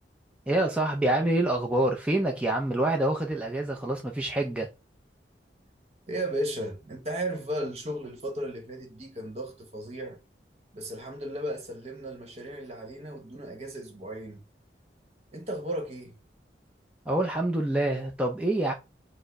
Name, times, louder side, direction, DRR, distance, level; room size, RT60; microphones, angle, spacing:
voice 1, 0.5-4.7 17.1-18.7, right 1 dB, 5° right, 0.5 m, -26 dB
voice 2, 6.1-10.2 10.7-14.4 15.3-16.2, right 1 dB, 40° right, 1.1 m, -35 dB
4.5 x 2.1 x 4.5 m
head